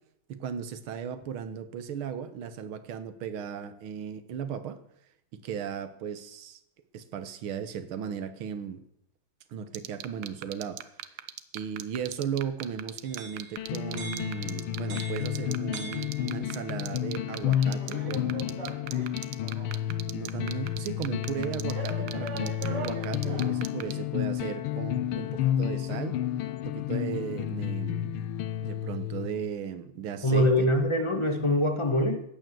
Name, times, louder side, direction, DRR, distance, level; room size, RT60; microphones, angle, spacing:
voice 1, 0.3-4.8 5.3-6.6 6.9-8.8 9.5-10.8 11.5-18.7 19.8-26.2 26.6-28.3 28.6-30.7, right 8 dB, 75° right, 12 dB, 1.9 m, -36 dB
sound 1, 9.7-23.9, right 13 dB, 90° right, 1.7 m, -38 dB
sound 2, 13.0-16.7 17.5-19.8 20.5-20.6 21.7-23.7, right 3 dB, 55° right, 2.2 m, -42 dB
sound 3, 13.6-29.5, left 11 dB, 80° left, 1.6 m, -31 dB
voice 2, 30.2-32.2, left 1 dB, 15° left, 5 dB, 1.4 m, -24 dB
14.0 x 9.3 x 7.6 m, 0.78 s
omnidirectional pair, 2.4 m